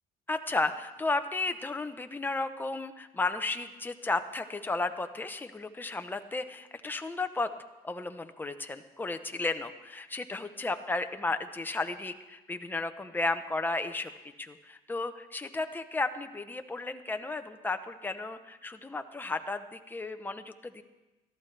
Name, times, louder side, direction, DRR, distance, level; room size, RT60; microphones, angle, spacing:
voice 1, 0.3-7.5 7.8-14.1 14.4-20.8, left 3 dB, 10° left, 7 dB, 0.8 m, -33 dB
21.0 x 13.5 x 3.3 m, 1.1 s
cardioid pair, 110°, 17 cm